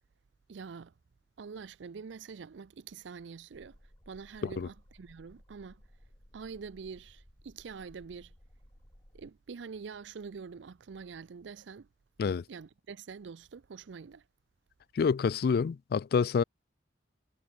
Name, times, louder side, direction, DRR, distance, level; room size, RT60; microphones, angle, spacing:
voice 1, 0.5-0.9 1.4-3.8 4.1-5.8 6.3-8.3 9.1-11.9 12.5-14.2, right 5 dB, 75° right, 0.5 m, -45 dB
sound 1, 3.5-9.3, equal, 20° left, 3.7 m, -59 dB
voice 2, 14.9-16.4, left 5 dB, 55° left, 0.3 m, -27 dB
head